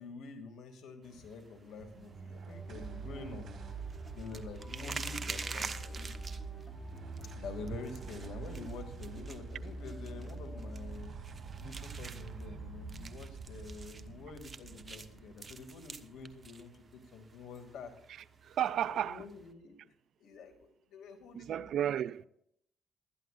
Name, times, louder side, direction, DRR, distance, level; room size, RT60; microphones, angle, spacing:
voice 1, 0.0-3.5 4.1-6.3 7.4-11.2 11.6-17.9 18.7-19.9 20.2-21.8, left 4 dB, 80° left, 2.4 m, -47 dB
sound 1, 1.0-19.5, right 4 dB, 30° right, 1.0 m, -48 dB
sound 2, 1.8-16.4, right 4 dB, 50° right, 2.5 m, -45 dB
sound 3, 2.5-11.4, equal, 30° left, 3.8 m, -56 dB
voice 2, 18.1-19.2 21.3-22.2, right 10 dB, 70° right, 0.4 m, -33 dB
20.5 x 12.5 x 2.5 m
cardioid pair, 90°, 0 cm